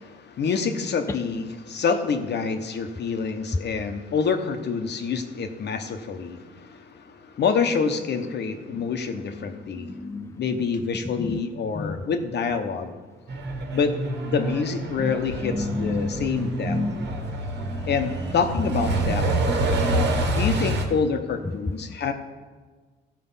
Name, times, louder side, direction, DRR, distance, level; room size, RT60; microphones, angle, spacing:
voice 1, 0.0-10.0 10.3-12.9 13.7-13.9 14.2-16.8 17.8-19.3 20.3-22.1, left 5 dB, 60° left, 7 dB, 1.1 m, -27 dB
voice 2, 9.8-10.3 11.2-11.4 11.8-12.0 15.0-15.2 15.4-16.2 16.7-17.0 17.6-17.9 19.5-20.2, left 3 dB, 15° left, 8 dB, 0.5 m, -31 dB
Truck, 13.3-20.9, right 2 dB, 60° right, 1.7 m, -27 dB
14.0 x 4.7 x 5.6 m, 1.4 s
cardioid pair, 90°, 20 cm